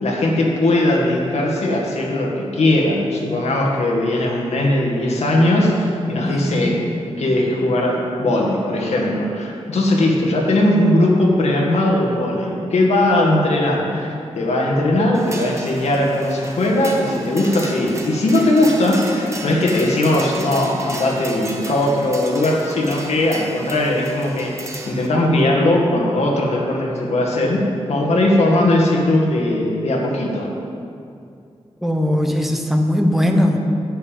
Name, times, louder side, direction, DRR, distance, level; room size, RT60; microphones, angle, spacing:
voice 1, 0.0-27.6 27.9-30.5, left 1 dB, 75° left, -1 dB, 1.9 m, -19 dB
voice 2, 6.2-6.7 31.8-33.6, left 1 dB, ahead, 3 dB, 1.1 m, -19 dB
sound 1, 15.1-25.1, right 2 dB, 25° right, 1.2 m, -35 dB
10.0 x 9.2 x 5.3 m, 2.4 s
wide cardioid pair, 105°, 11 cm